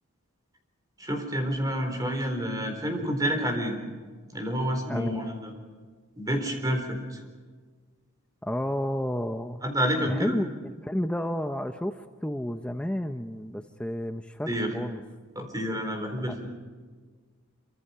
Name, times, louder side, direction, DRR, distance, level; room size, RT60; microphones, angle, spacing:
voice 1, 1.0-3.8 4.3-5.5 6.2-7.2 9.6-10.4 14.5-14.7 15.4-16.5, equal, 15° right, 4 dB, 4.1 m, -29 dB
voice 2, 8.4-9.6 10.1-15.0 16.3-16.4, equal, 5° left, 7 dB, 0.6 m, -31 dB
27.0 x 25.0 x 5.6 m, 1.5 s
head